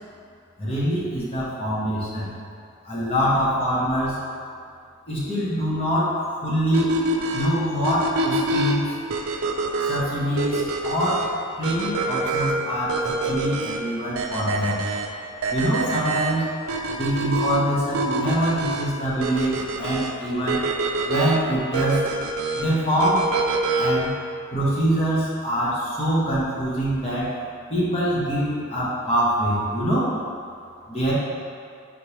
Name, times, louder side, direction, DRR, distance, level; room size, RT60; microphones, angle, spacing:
voice 1, 0.6-2.3 2.8-4.2 5.1-6.9 7.3-8.8 9.9-11.2 11.6-14.8 15.5-16.5 16.9-20.6 21.1-22.1 22.5-23.2 23.8-24.1 24.5-27.3 27.7-30.1 30.9-31.1, equal, 30° left, -8 dB, 1.0 m, -24 dB
sound 1, 6.7-24.1, right 2 dB, 80° right, 0.4 m, -26 dB
5.1 x 3.3 x 3.0 m, 2.4 s
head